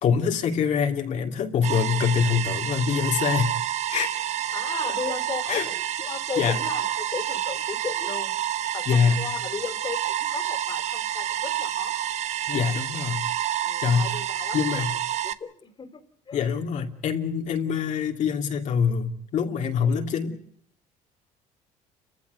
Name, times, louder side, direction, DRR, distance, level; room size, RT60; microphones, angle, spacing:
voice 1, 0.0-3.5 3.9-4.2 5.5-5.7 6.4-6.6 8.9-9.3 12.5-13.2 13.8-14.2 14.5-14.9 16.3-20.4, left 6 dB, 60° left, 3 dB, 2.8 m, -24 dB
sound 1, 1.6-15.3, right 11 dB, 55° right, 1.1 m, -29 dB
voice 2, 4.5-5.7 6.0-8.3 8.7-12.0 13.6-14.8 15.2-16.5, left 5 dB, 35° left, 9 dB, 3.1 m, -35 dB
29.5 x 15.0 x 8.2 m, 0.69 s
cardioid pair, 110°, 14 cm